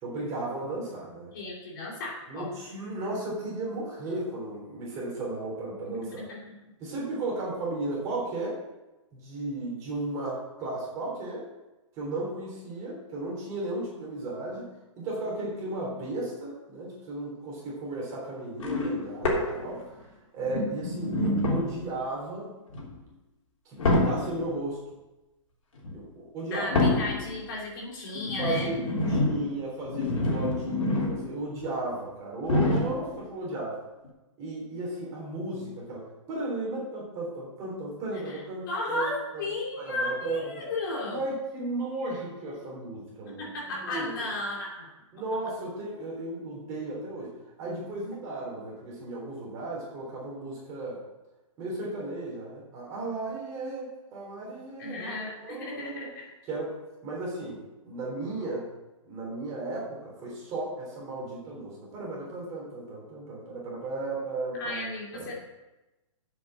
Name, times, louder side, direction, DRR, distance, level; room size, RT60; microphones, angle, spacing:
voice 1, 0.0-1.3 2.3-6.3 6.8-8.6 9.1-11.5 11.9-14.7 15.0-20.0 20.3-22.5 23.7-24.8 25.9-26.7 28.4-33.8 34.4-39.4 39.8-40.5 41.0-44.1 45.1-51.0 51.6-56.1 56.5-56.7 57.0-58.7 59.0-64.8 65.1-65.3, right 2 dB, 20° right, -4 dB, 3.5 m, -35 dB
voice 2, 1.3-2.5 5.7-6.5 26.5-28.7 38.3-38.4 38.7-41.2 43.4-44.9 54.8-56.2 64.6-65.3, left 2 dB, 40° left, -3 dB, 2.6 m, -34 dB
sound 1, 18.6-20.0 20.4-21.9 22.7-23.0 23.8-24.5 25.7-26.0 26.7-27.4 28.1-31.4 31.6-31.7 32.4-33.2 34.0-34.1, left 2 dB, 85° left, 3.4 m, -27 dB
8.0 x 6.9 x 7.4 m, 1.0 s
hypercardioid pair, 170°, 17 cm